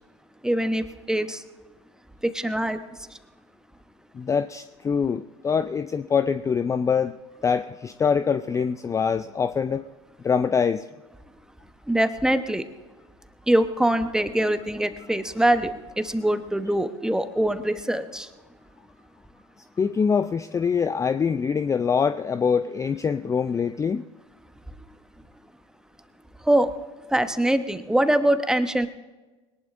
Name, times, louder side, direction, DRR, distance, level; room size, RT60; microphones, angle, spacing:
voice 1, 0.4-1.4 2.2-2.8 11.9-12.6 13.5-18.3 26.4-26.7 27.1-28.9, right 1 dB, 5° right, 9 dB, 1.0 m, -23 dB
voice 2, 4.1-7.2 7.4-9.9 10.2-10.9 19.8-24.0, left 6 dB, 20° left, 11 dB, 0.4 m, -24 dB
21.0 x 19.0 x 2.6 m, 1.2 s
hypercardioid pair, 80°, 15 cm